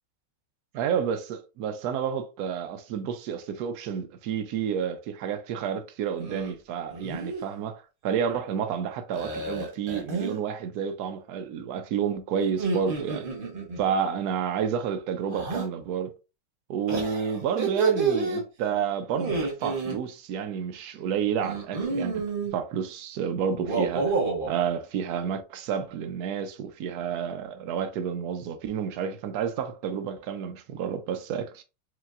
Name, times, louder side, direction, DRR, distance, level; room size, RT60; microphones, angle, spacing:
voice 1, 0.7-13.3 13.8-16.1 16.7-22.2 22.5-24.2 24.4-31.6, right 7 dB, 85° right, 0.8 m, -30 dB
sound 1, 6.2-6.5 6.9-7.4 9.1-10.4 12.5-13.8 15.3-15.7 16.9-18.4 19.1-20.0 21.4-22.5 23.5-24.5, right 4 dB, 50° right, 0.6 m, -29 dB
4.7 x 3.3 x 2.5 m
omnidirectional pair, 2.4 m